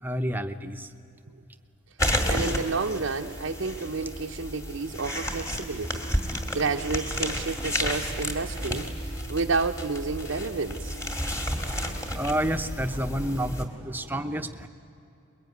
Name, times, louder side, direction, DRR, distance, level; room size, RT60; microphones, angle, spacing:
voice 1, 0.0-0.9 12.1-14.7, right 1 dB, 10° right, 8 dB, 0.8 m, -29 dB
sound 1, 2.0-13.6, equal, 15° left, 2.1 m, -31 dB
voice 2, 2.3-6.0 6.3-10.9, right 4 dB, 65° right, 2 dB, 0.7 m, -30 dB
25.0 x 21.5 x 9.4 m, 2.8 s
head